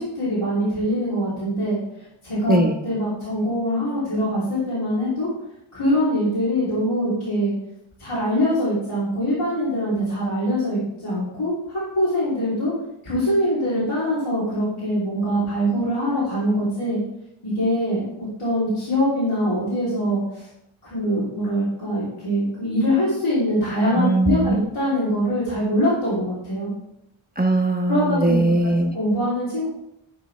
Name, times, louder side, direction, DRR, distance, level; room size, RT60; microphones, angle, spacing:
voice 1, 0.0-1.8 2.2-5.3 5.7-7.5 8.0-12.7 13.0-17.0 17.4-20.5 20.8-26.7 27.9-28.4 28.9-29.7, equal, 90° left, -10 dB, 3.4 m, -23 dB
voice 2, 24.0-24.7 27.4-28.9, right 1 dB, 20° right, 2 dB, 1.3 m, -20 dB
12.5 x 6.0 x 3.3 m, 0.80 s
wide cardioid pair, 40°, 49 cm